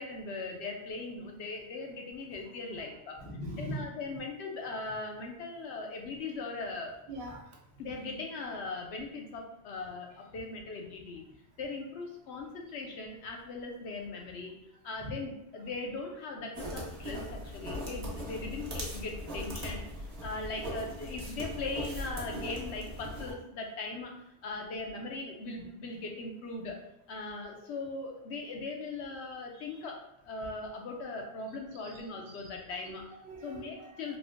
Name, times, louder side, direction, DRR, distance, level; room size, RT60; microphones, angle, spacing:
voice 1, 0.0-3.2 3.6-6.9 7.8-11.2 11.6-14.5 14.8-19.9 20.2-26.8 27.1-30.0 30.2-33.0 33.4-34.2, left 3 dB, 85° left, 1 dB, 0.9 m, -39 dB
voice 2, 3.2-3.9 7.1-7.4 29.5-29.7 31.8-31.9 32.4-32.5 32.8-33.9, right 1 dB, 75° right, 0 dB, 1.0 m, -41 dB
sound 1, 16.5-23.3, equal, 40° right, 0.8 m, -39 dB
3.5 x 2.6 x 2.5 m, 0.79 s
omnidirectional pair, 1.1 m